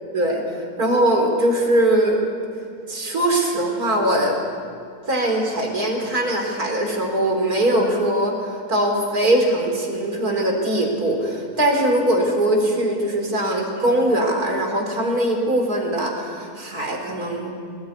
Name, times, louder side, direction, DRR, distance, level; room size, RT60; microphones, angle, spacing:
voice 1, 0.8-2.2 2.9-4.4 5.1-17.5, right 1 dB, 70° right, 2 dB, 4.7 m, -21 dB
22.5 x 20.0 x 9.7 m, 2.4 s
omnidirectional pair, 1.6 m